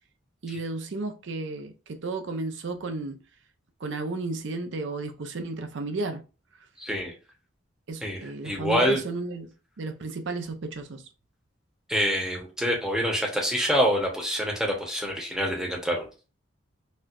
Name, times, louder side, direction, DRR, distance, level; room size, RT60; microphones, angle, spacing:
voice 1, 0.4-3.2 3.8-6.2 7.9-11.1, right 3 dB, 70° right, 0.5 m, -33 dB
voice 2, 6.8-7.1 8.0-9.0 11.9-16.1, equal, 5° right, 0.8 m, -26 dB
4.3 x 2.2 x 2.4 m
head